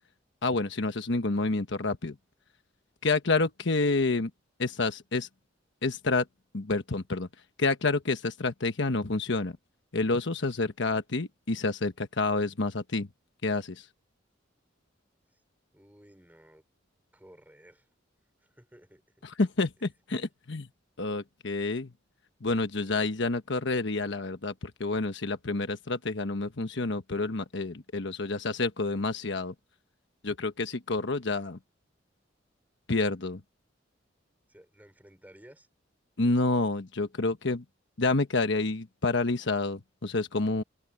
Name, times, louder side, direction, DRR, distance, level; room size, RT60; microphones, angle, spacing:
voice 1, 0.4-2.2 3.0-4.3 4.6-5.3 5.8-6.3 6.5-7.3 7.6-9.6 9.9-13.1 13.4-13.9 19.2-20.7 21.0-21.9 22.4-29.5 30.2-31.6 32.9-33.4 36.2-37.6 38.0-40.6, left 3 dB, 65° left, 1.2 m, -28 dB
voice 2, 15.7-16.6 17.1-17.9 18.4-19.2 22.8-23.3 34.5-35.7, equal, 10° right, 5.3 m, -55 dB
head